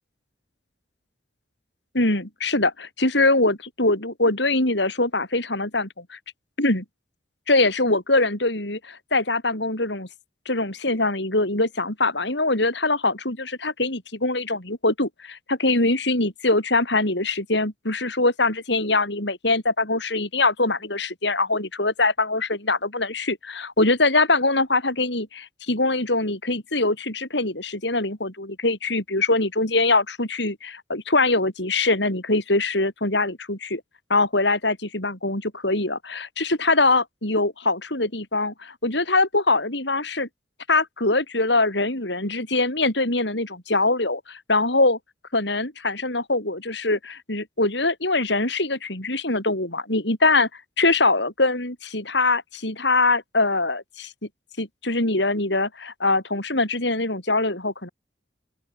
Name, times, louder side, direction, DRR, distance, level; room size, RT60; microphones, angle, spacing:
voice 1, 1.9-6.2 6.6-6.8 7.5-10.1 10.5-33.8 34.1-40.3 40.7-45.0 45.3-50.5 50.8-54.1 54.6-57.9, left 2 dB, 70° left, 6.3 m, -23 dB
open air
head